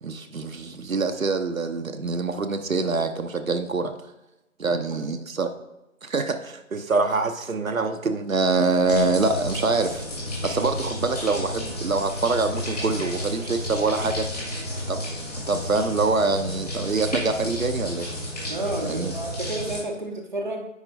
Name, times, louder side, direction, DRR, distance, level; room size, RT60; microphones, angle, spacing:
voice 1, 0.0-3.9 4.6-5.5 6.0-10.0 10.4-14.3 14.9-15.0 15.5-18.1 18.8-19.1, right 3 dB, 75° right, 7 dB, 0.8 m, -25 dB
voice 2, 4.7-5.1 18.5-20.7, right 2 dB, 35° right, 2 dB, 0.7 m, -31 dB
sound 1, 8.9-19.8, left 1 dB, 30° left, 1.9 m, -32 dB
9.7 x 4.4 x 2.7 m, 0.91 s
figure-of-eight pair, 160°, 41 cm